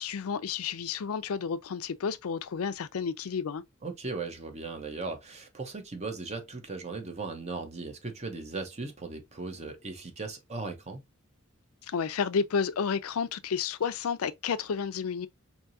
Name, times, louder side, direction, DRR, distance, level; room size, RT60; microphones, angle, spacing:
voice 1, 0.0-3.6 11.9-15.3, left 6 dB, 85° left, 0.4 m, -31 dB
voice 2, 3.8-11.0, right 3 dB, 30° right, 0.8 m, -38 dB
4.6 x 2.7 x 2.6 m
head